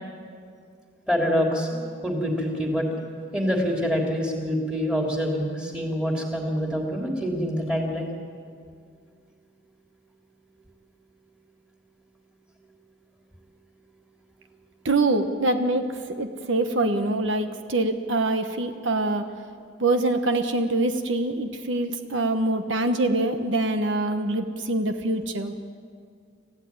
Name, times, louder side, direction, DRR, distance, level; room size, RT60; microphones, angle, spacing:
voice 1, 1.1-2.9 3.3-8.1, equal, 5° right, 0 dB, 3.3 m, -26 dB
voice 2, 14.8-19.3 19.8-25.5, right 2 dB, 70° right, 7 dB, 1.2 m, -24 dB
27.0 x 15.5 x 9.5 m, 2.2 s
head